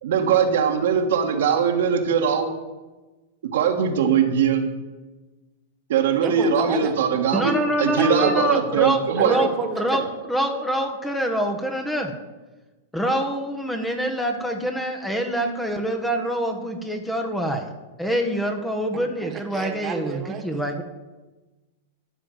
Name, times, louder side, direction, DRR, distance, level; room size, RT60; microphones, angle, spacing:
voice 1, 0.0-2.5 3.5-4.7 5.9-7.5 7.8-9.4, right 7 dB, 65° right, 3 dB, 1.6 m, -21 dB
voice 2, 6.2-6.9 8.0-8.4 9.2-10.1 18.9-20.8, right 6 dB, 30° right, 5 dB, 1.8 m, -30 dB
voice 3, 7.3-12.1 12.9-17.7 18.0-20.8, equal, 5° left, 4 dB, 1.3 m, -25 dB
12.5 x 5.1 x 7.8 m, 1.2 s
hypercardioid pair, 100°, 0 cm